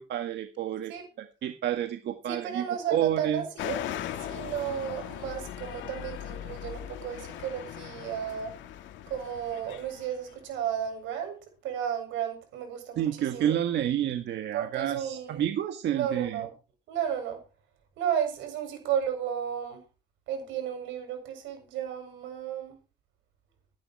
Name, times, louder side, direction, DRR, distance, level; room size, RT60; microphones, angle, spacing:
voice 1, 0.0-3.4 13.0-16.5, right 11 dB, 65° right, 8 dB, 1.7 m, -30 dB
voice 2, 2.3-3.9 4.2-8.5 9.1-11.3 11.6-13.5 14.5-15.4 15.9-16.5 16.9-17.4 18.0-19.8 20.3-22.8, right 9 dB, 85° right, 5 dB, 7.6 m, -33 dB
sound 1, 3.6-10.6, left 11 dB, 80° left, 2.0 m, -39 dB
17.0 x 11.5 x 4.7 m, 0.33 s
cardioid pair, 110°, 19 cm